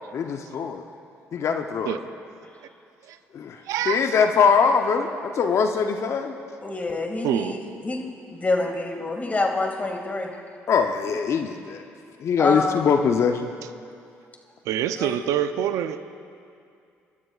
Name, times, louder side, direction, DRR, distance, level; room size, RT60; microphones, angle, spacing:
voice 1, 0.1-0.8 1.3-2.0 3.3-3.6 3.9-6.3 10.7-11.8 12.2-13.5, left 6 dB, 60° left, 6 dB, 0.7 m, -22 dB
voice 2, 3.7-4.0 7.2-7.6 14.7-16.1, right 10 dB, 75° right, 11 dB, 0.5 m, -25 dB
voice 3, 6.6-8.0 8.3-10.4 12.4-12.9 14.9-15.2, left 2 dB, 30° left, 2 dB, 2.2 m, -27 dB
27.5 x 12.0 x 2.4 m, 2.4 s
supercardioid pair, 60°, 6 cm